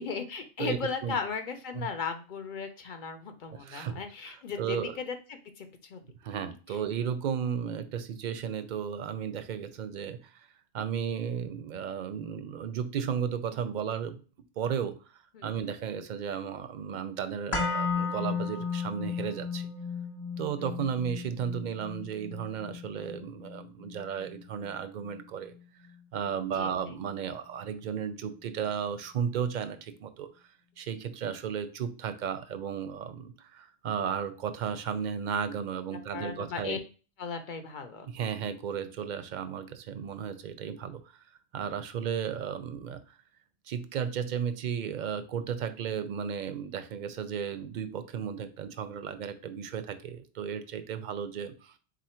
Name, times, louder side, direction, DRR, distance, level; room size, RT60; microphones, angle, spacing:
voice 1, 0.0-6.0 6.7-6.8 15.3-15.5 26.5-27.0 35.9-36.8 37.2-38.1, left 5 dB, 55° left, 7 dB, 0.7 m, -37 dB
voice 2, 3.5-4.0 4.3-4.9 6.2-10.5 10.7-14.2 14.6-19.7 20.4-25.5 26.1-30.3 30.8-36.8 38.1-41.0 41.5-43.0 43.7-51.7, right 7 dB, 55° right, 10 dB, 0.6 m, -34 dB
sound 1, 17.5-25.6 25.9-26.0, left 5 dB, 30° left, 0.9 m, -35 dB
3.9 x 2.5 x 4.3 m, 0.36 s
omnidirectional pair, 1.1 m